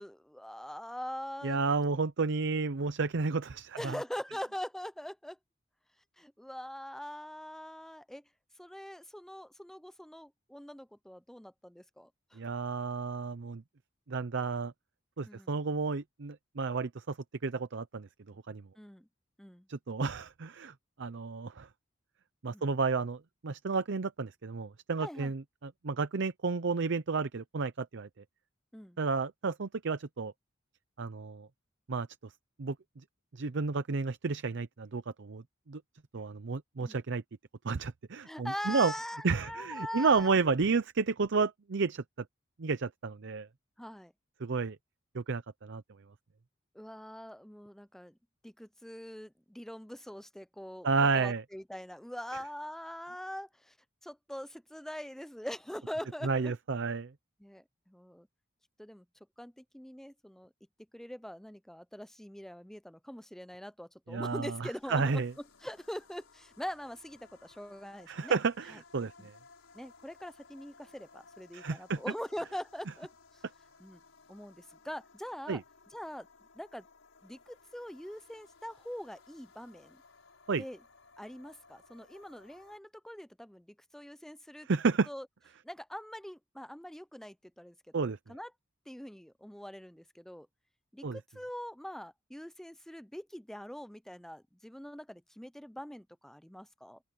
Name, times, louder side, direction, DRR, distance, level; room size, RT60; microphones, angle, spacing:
voice 1, 0.0-1.6 3.7-5.4 6.2-8.2 8.6-12.4 15.3-15.6 18.8-19.1 19.4-19.7 22.5-22.7 25.0-25.3 28.7-29.0 36.8-37.0 38.2-40.4 43.8-44.1 46.7-48.2 48.4-50.9 51.1-53.7 54.0-56.5 57.4-58.3 58.8-59.1 59.4-60.5 60.9-65.2 65.6-68.4 68.7-68.8 69.2-69.3 69.7-73.1 73.8-74.0 74.3-75.6 75.9-76.3 76.5-76.9 77.2-80.0 80.6-80.8 81.2-84.7 85.1-85.3 85.6-88.5 88.9-90.5 90.9-97.0, equal, ahead, 0.5 m, -43 dB
voice 2, 1.4-4.0 12.4-13.6 14.1-14.7 15.2-17.2 17.4-18.1 18.5-18.6 19.7-20.7 21.0-21.7 22.4-28.1 29.0-30.3 31.0-31.5 31.9-32.3 32.6-32.8 33.3-35.8 36.1-37.2 37.6-38.9 39.2-42.0 42.6-43.5 44.4-44.8 45.1-45.8 50.8-51.4 56.2-57.1 64.1-65.3 68.1-69.3 71.5-72.0 75.5-75.6 80.5-80.6 84.6-85.1 87.9-88.2 91.0-91.2, right 4 dB, 65° right, 0.6 m, -31 dB
sound 1, 64.5-82.8, left 4 dB, 85° left, 5.8 m, -60 dB
open air
head